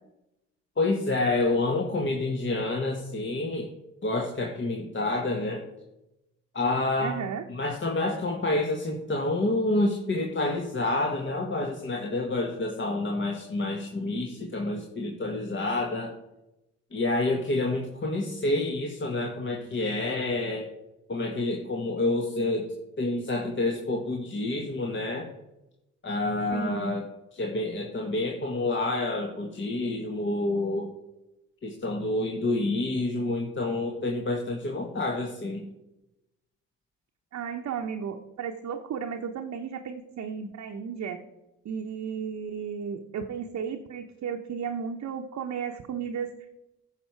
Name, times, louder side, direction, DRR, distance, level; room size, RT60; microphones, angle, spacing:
voice 1, 0.8-3.7 4.0-5.6 6.5-7.2 7.5-16.1 16.9-20.7 21.1-22.7 23.0-25.3 26.0-27.0 27.3-30.9 31.6-35.6, left 2 dB, 35° left, 1 dB, 1.7 m, -28 dB
voice 2, 7.0-7.4 26.5-27.0 37.3-41.2 41.6-46.3, right 7 dB, 50° right, 2 dB, 1.0 m, -34 dB
15.5 x 5.9 x 4.7 m, 0.94 s
hypercardioid pair, 50°, 34 cm